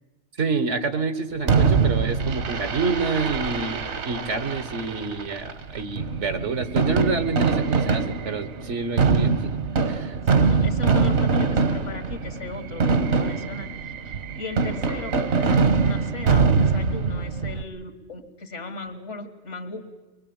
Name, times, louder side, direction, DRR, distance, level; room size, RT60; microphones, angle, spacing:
voice 1, 0.4-9.6 9.9-10.2, right 4 dB, 85° right, 11 dB, 1.7 m, -28 dB
Fireworks, 1.5-17.6, right 4 dB, 70° right, 1.4 m, -23 dB
voice 2, 10.3-19.8, left 3 dB, 90° left, 7 dB, 2.2 m, -37 dB
24.0 x 21.5 x 8.8 m, 1.2 s
omnidirectional pair, 1.2 m